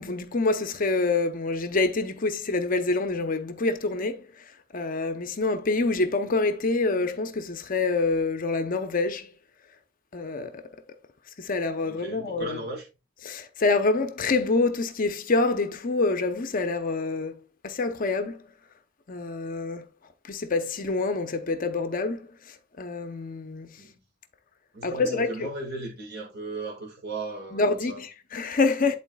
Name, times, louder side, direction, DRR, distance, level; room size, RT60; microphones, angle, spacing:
voice 1, 0.0-4.2 4.7-9.3 10.1-10.5 11.4-12.6 13.2-17.3 17.6-18.4 19.1-19.9 20.3-22.2 22.8-23.7 24.8-25.5 27.5-29.0, left 3 dB, 40° left, 0.6 m, -26 dB
voice 2, 11.8-12.9 23.8-24.0 24.7-28.0, right 2 dB, 50° right, 1.8 m, -36 dB
11.0 x 4.0 x 2.2 m
head